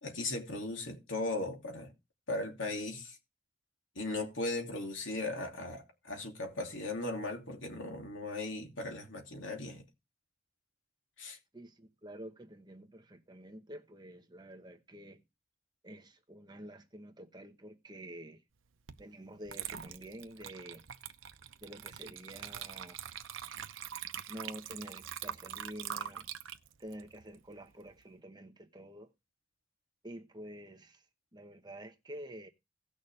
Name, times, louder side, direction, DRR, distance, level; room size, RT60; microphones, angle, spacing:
voice 1, 0.0-1.9 2.3-3.2 3.9-9.8 11.2-11.4, left 2 dB, 80° left, 2.8 m, -37 dB
voice 2, 11.5-15.2 15.8-18.4 19.0-20.8 21.6-23.0 24.3-26.3 26.8-29.1 30.0-31.0 31.3-32.5, right 1 dB, 20° right, 1.1 m, -48 dB
Water / Liquid, 18.9-19.0 19.5-28.0, right 9 dB, 90° right, 0.8 m, -44 dB
17.5 x 6.5 x 3.3 m
head